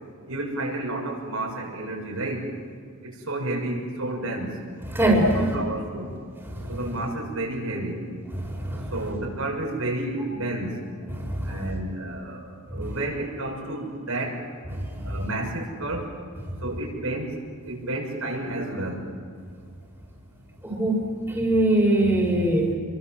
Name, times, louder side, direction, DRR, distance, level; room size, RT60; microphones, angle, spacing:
voice 1, 0.3-2.4 3.0-4.5 5.3-6.1 6.7-8.0 8.9-10.7 11.4-12.4 12.7-14.4 15.0-16.1 16.6-17.3 17.6-19.1, right 2 dB, 75° right, -1 dB, 7.0 m, -30 dB
voice 2, 4.9-5.4 6.5-6.8 8.4-8.9 11.1-11.7 14.7-15.2 20.6-22.7, right 1 dB, 10° right, -1 dB, 4.6 m, -23 dB
29.5 x 23.0 x 7.6 m, 2.2 s
head